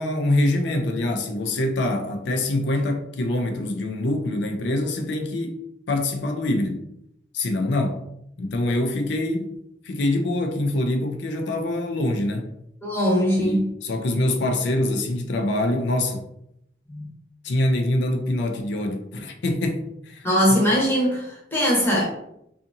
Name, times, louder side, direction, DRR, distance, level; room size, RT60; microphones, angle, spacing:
voice 1, 0.0-5.6 5.9-6.9 7.3-8.0 8.4-9.6 9.8-12.5 13.4-16.3 17.4-20.3, left 1 dB, 65° left, 0.4 m, -24 dB
voice 2, 12.8-13.6 16.9-17.1 20.2-22.1, equal, 10° left, 0.9 m, -21 dB
2.7 x 2.4 x 2.6 m
head